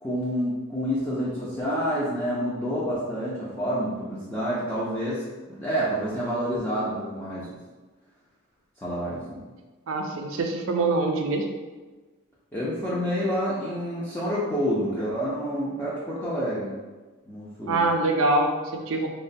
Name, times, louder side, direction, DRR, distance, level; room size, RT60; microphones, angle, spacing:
voice 1, 0.0-7.5 8.8-9.4 12.5-16.7 17.3-17.8, equal, 10° left, -9 dB, 0.4 m, -28 dB
voice 2, 9.9-11.5 17.7-19.1, right 2 dB, 80° right, 3 dB, 0.4 m, -24 dB
3.0 x 2.1 x 2.5 m, 1.3 s
head